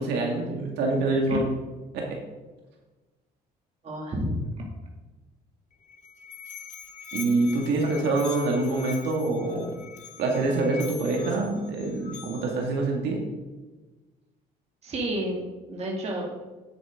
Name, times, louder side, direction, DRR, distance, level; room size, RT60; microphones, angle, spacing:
voice 1, 0.0-1.5 1.9-2.2 7.1-9.7 10.2-13.2, right 2 dB, 85° right, 0 dB, 2.2 m, -26 dB
voice 2, 3.8-4.6 7.8-8.1 14.8-15.4 15.7-16.3, right 1 dB, 40° right, -1 dB, 2.5 m, -30 dB
Musical instrument, 5.7-12.7, left 6 dB, 45° left, 1.3 m, -43 dB
9.8 x 8.4 x 3.8 m, 1.2 s
cardioid pair, 110°, 17 cm